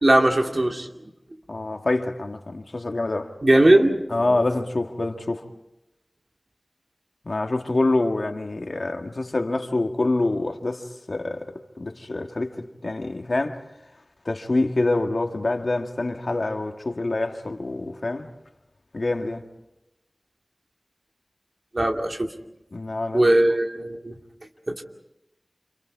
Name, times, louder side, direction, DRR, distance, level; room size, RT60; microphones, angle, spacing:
voice 1, 0.0-0.9 3.4-4.4 21.7-22.3 23.1-24.1 24.7-24.8, right 1 dB, 55° right, 2.5 m, -19 dB
voice 2, 1.5-3.3 4.1-5.5 7.3-13.6 14.3-18.3 18.9-19.4 22.7-23.3, left 2 dB, 80° left, 1.9 m, -26 dB
29.5 x 27.0 x 4.8 m
wide cardioid pair, 50°, 0 cm